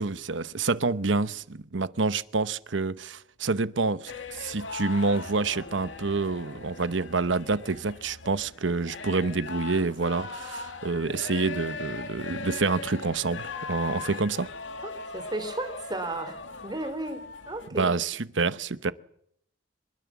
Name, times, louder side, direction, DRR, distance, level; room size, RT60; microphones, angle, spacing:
voice 1, 0.0-14.5 17.8-18.9, right 3 dB, 85° right, 1.0 m, -28 dB
sound 1, 4.1-17.7, left 4 dB, 85° left, 2.1 m, -39 dB
voice 2, 14.8-18.0, right 2 dB, 25° right, 3.3 m, -34 dB
24.5 x 22.0 x 7.3 m
head